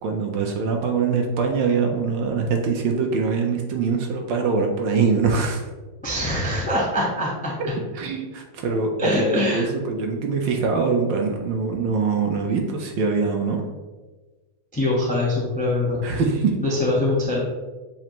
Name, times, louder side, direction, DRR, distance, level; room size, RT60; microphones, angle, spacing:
voice 1, 0.0-5.7 7.6-7.7 7.9-13.6 16.0-16.6, right 5 dB, 75° right, 2 dB, 1.2 m, -23 dB
voice 2, 6.0-7.5 9.0-9.7 14.7-16.0 16.6-17.4, left 1 dB, 10° left, -4 dB, 0.5 m, -23 dB
7.4 x 2.5 x 2.9 m, 1.2 s
omnidirectional pair, 2.2 m